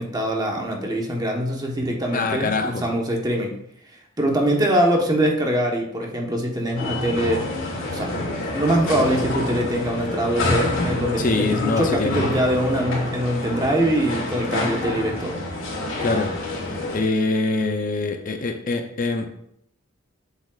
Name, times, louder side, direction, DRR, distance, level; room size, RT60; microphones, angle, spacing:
voice 1, 0.0-3.6 4.2-7.4 7.9-8.1 8.5-15.4, right 1 dB, 20° right, 0 dB, 1.1 m, -23 dB
voice 2, 2.1-2.9 11.2-12.3 16.0-16.3 16.9-19.3, left 3 dB, 40° left, 5 dB, 0.6 m, -24 dB
sound 1, 6.8-17.0, left 2 dB, 65° left, 2.3 m, -28 dB
7.7 x 7.1 x 2.4 m, 0.73 s
head